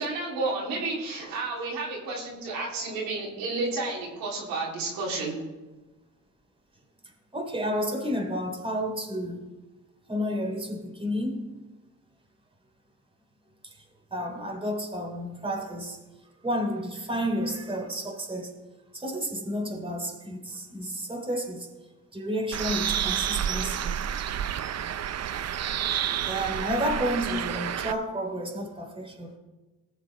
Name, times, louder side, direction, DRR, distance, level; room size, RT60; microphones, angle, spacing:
voice 1, 0.0-5.4, right 3 dB, 85° right, 3.6 m, -31 dB
voice 2, 7.3-9.5 10.1-11.5 13.6-13.7 14.1-16.0 16.4-18.5 18.9-21.7 22.1-24.0 26.2-29.4, equal, 15° right, 3.2 m, -31 dB
Bird, 22.5-27.9, right 9 dB, 50° right, 0.7 m, -29 dB
19.5 x 6.9 x 4.4 m
supercardioid pair, 70°, 34 cm